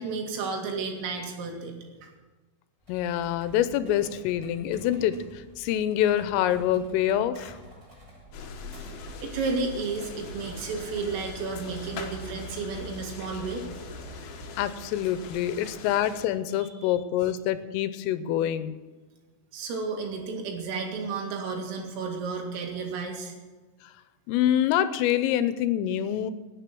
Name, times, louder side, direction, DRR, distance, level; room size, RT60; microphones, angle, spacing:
voice 1, 0.0-1.8 2.0-2.1 9.2-13.7 15.6-15.7 16.6-16.9 19.5-23.4, right 4 dB, 80° right, 2 dB, 4.7 m, -32 dB
sound 1, 2.8-9.1, equal, 15° right, 6.4 m, -51 dB
voice 2, 2.9-7.6 14.6-18.8 24.3-26.3, left 11 dB, 85° left, 12 dB, 3.2 m, -26 dB
sound 2, 8.3-16.3, left 6 dB, 65° left, 2.6 m, -44 dB
sound 3, 8.3-14.6, right 1 dB, 40° right, 5.0 m, -43 dB
18.0 x 9.0 x 6.1 m, 1.2 s
omnidirectional pair, 5.9 m